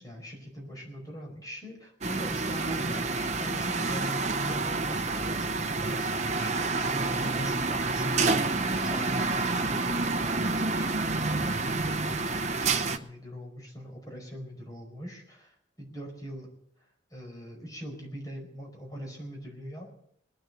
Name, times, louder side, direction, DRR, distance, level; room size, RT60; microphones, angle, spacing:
voice 1, 0.0-16.5 17.1-20.0, equal, 20° left, 0 dB, 5.0 m, -42 dB
sound 1, 2.0-13.0, right 3 dB, 40° right, 0.9 m, -28 dB
20.5 x 9.6 x 6.8 m, 0.70 s
head